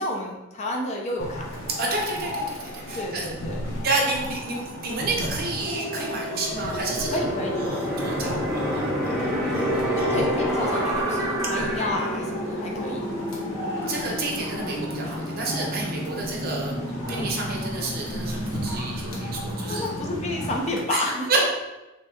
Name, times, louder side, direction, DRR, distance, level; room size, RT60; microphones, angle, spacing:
voice 1, 0.0-1.4 2.9-3.7 7.1-7.7 10.0-13.0 16.2-16.4 18.9-19.0 19.7-21.4, left 1 dB, 35° left, 0 dB, 0.4 m, -30 dB
sound 1, 1.2-20.8, left 1 dB, 85° left, 0.7 m, -36 dB
voice 2, 1.8-3.3 3.8-7.2 7.5-9.6 10.0-10.1 13.9-16.8 17.1-19.9 20.9-21.0 21.3-21.4, right 3 dB, 45° right, -1 dB, 0.6 m, -30 dB
sound 2, 5.7-20.6, equal, 50° left, 0.9 m, -33 dB
sound 3, 6.6-17.3, equal, ahead, 0.7 m, -30 dB
3.2 x 2.8 x 2.2 m, 1.0 s
head